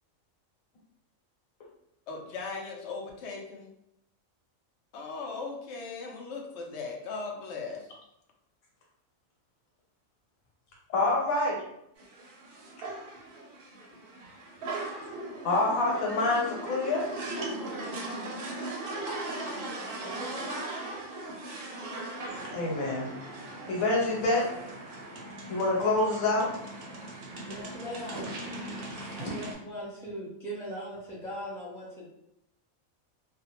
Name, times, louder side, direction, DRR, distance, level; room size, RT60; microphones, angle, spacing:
voice 1, 2.1-3.7 4.9-7.9, left 4 dB, 65° left, 1 dB, 0.8 m, -38 dB
voice 2, 10.9-11.6 15.4-17.0 22.5-23.1 23.7-24.5 25.5-26.5 29.2-29.3, left 2 dB, 90° left, -3 dB, 1.3 m, -26 dB
sound 1, 12.0-29.5, right 2 dB, 55° right, 0.6 m, -39 dB
voice 3, 20.0-20.5 27.4-28.3 29.2-32.1, equal, 5° left, -6 dB, 0.3 m, -40 dB
2.4 x 2.1 x 2.8 m, 0.79 s
omnidirectional pair, 1.4 m